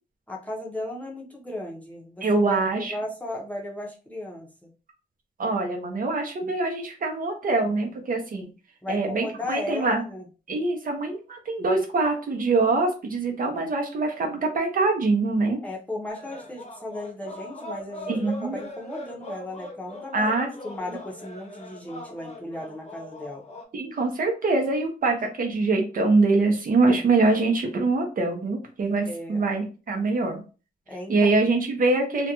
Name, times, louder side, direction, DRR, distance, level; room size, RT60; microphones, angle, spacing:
voice 1, 0.3-2.2 2.5-4.7 8.8-10.2 15.6-20.3 20.6-23.4 29.1-29.5 30.9-31.3, left 1 dB, 10° left, -2 dB, 0.7 m, -36 dB
voice 2, 2.2-2.9 5.4-8.5 8.9-10.0 10.5-15.6 18.1-18.6 20.1-20.5 23.7-30.4 31.1-32.3, right 3 dB, 60° right, 3 dB, 0.7 m, -24 dB
sound 1, 16.1-23.6, left 1 dB, 45° left, 0.7 m, -40 dB
2.4 x 2.2 x 2.8 m, 0.34 s
wide cardioid pair, 125°, 16 cm